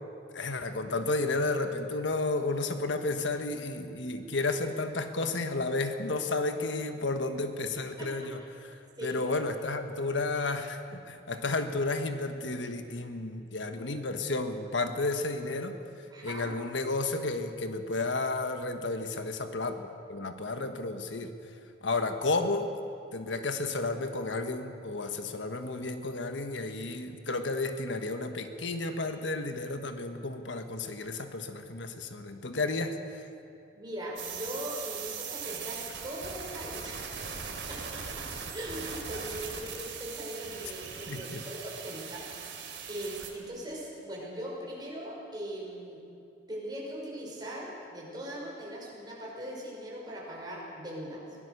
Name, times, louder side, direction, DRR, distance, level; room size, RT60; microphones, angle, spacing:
voice 1, 0.3-8.4 9.0-15.8 16.2-21.3 21.8-22.7 23.1-33.2 41.1-41.4, left 3 dB, 85° left, 7 dB, 1.3 m, -32 dB
voice 2, 16.1-16.5 33.7-37.0 37.7-38.3 38.5-42.6 42.9-46.0 46.5-51.4, equal, 25° right, -4 dB, 5.7 m, -40 dB
sound 1, 34.2-43.3, right 6 dB, 65° right, 2.9 m, -40 dB
23.0 x 17.5 x 6.7 m, 2.6 s
head